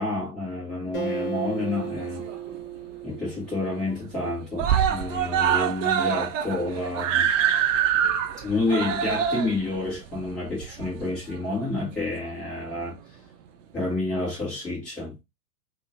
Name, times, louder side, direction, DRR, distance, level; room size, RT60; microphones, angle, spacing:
voice 1, 0.0-2.3 3.0-7.3 8.4-13.0 13.7-15.2, left 2 dB, ahead, 0.3 m, -29 dB
Acoustic guitar, 0.9-4.4, right 5 dB, 20° left, 1.1 m, -35 dB
Screaming, 1.7-2.6 2.9-3.0 3.4-3.5 3.8-4.2 4.6-11.4 12.2-12.3, right 9 dB, 55° right, 0.5 m, -25 dB
3.7 x 2.0 x 2.3 m
hypercardioid pair, 115°, 46 cm